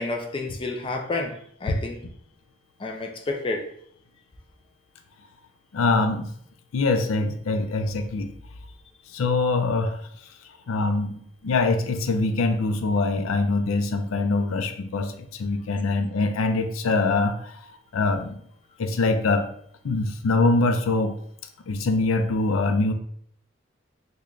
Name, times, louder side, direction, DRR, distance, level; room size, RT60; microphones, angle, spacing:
voice 1, 0.0-2.0 2.8-3.7, left 2 dB, 25° left, 1 dB, 0.3 m, -30 dB
voice 2, 5.7-6.3 6.7-8.3 9.1-10.0 10.7-17.6 17.9-18.4 18.8-19.4 19.8-21.1 21.7-22.9, left 3 dB, 90° left, 7 dB, 0.4 m, -23 dB
3.1 x 2.2 x 3.8 m, 0.64 s
head